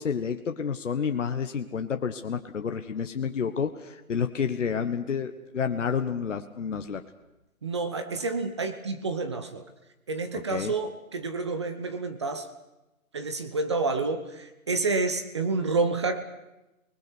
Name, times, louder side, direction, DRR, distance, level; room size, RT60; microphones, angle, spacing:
voice 1, 0.0-7.0 10.3-10.7, left 6 dB, 60° left, 7 dB, 1.3 m, -30 dB
voice 2, 7.6-9.6 10.1-12.5 13.1-16.2, right 3 dB, 20° right, 8 dB, 0.8 m, -29 dB
27.5 x 20.5 x 6.2 m, 0.97 s
hypercardioid pair, 155°, 42 cm